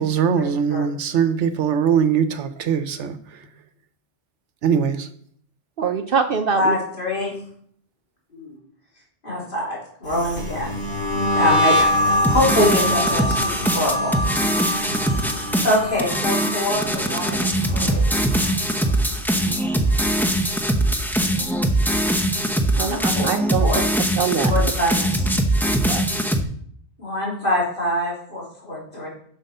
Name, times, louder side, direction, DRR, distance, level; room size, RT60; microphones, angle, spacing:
voice 1, 0.0-3.4 4.6-5.1, right 7 dB, 85° right, 10 dB, 1.1 m, -21 dB
voice 2, 5.8-6.7 22.8-23.7 24.2-24.5 25.8-26.0, right 6 dB, 60° right, 7 dB, 0.8 m, -23 dB
voice 3, 6.5-7.3 8.3-8.5 9.2-10.7 11.1-11.7 12.0-14.1 15.6-18.1 22.8-23.3 23.6-23.8 24.5-25.4 27.0-29.1, left 1 dB, 50° left, -5 dB, 3.7 m, -24 dB
sound 1, 10.1-19.2 19.5-20.0 20.3-21.8, left 1 dB, 20° left, 1.9 m, -25 dB
sound 2, 12.2-26.4, right 1 dB, ahead, 0.6 m, -22 dB
7.8 x 6.3 x 5.5 m, 0.62 s
omnidirectional pair, 1.2 m